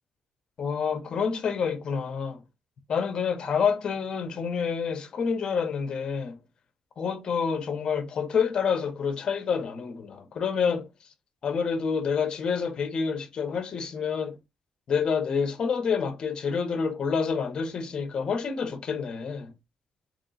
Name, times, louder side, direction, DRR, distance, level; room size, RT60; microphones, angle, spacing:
voice 1, 0.6-2.4 2.9-6.4 7.0-10.9 11.4-14.4 14.9-19.5, left 6 dB, 45° left, 0.8 m, -28 dB
3.1 x 2.9 x 3.9 m
cardioid pair, 150°, 2 cm